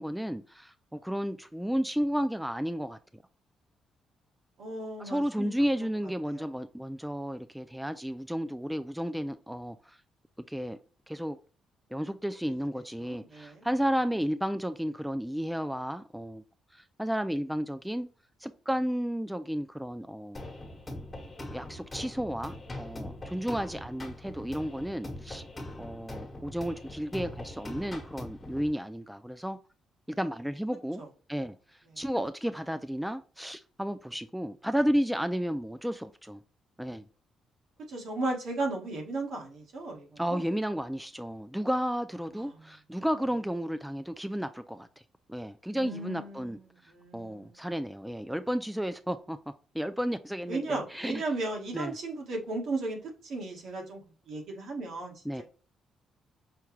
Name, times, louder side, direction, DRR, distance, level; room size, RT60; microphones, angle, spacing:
voice 1, 0.0-3.0 5.0-10.0 10.5-10.8 11.1-11.4 11.9-16.4 16.7-18.1 18.4-20.4 21.5-25.4 25.8-29.6 30.1-31.0 31.3-31.5 32.0-36.4 36.8-37.0 40.2-44.9 45.3-49.4 49.7-51.2 51.7-51.9 55.3-55.4, equal, 5° right, 0.3 m, -32 dB
voice 2, 4.6-5.5 5.8-5.9 6.3-6.5 12.4-12.5 13.0-13.6 31.0-31.1 37.9-40.4 42.4-42.7 45.7-47.5 50.5-54.0 54.3-55.4, right 2 dB, 70° right, 1.5 m, -36 dB
sound 1, 20.3-28.7, left 1 dB, 20° left, 1.3 m, -42 dB
5.7 x 2.3 x 3.1 m
cardioid pair, 90°, 0 cm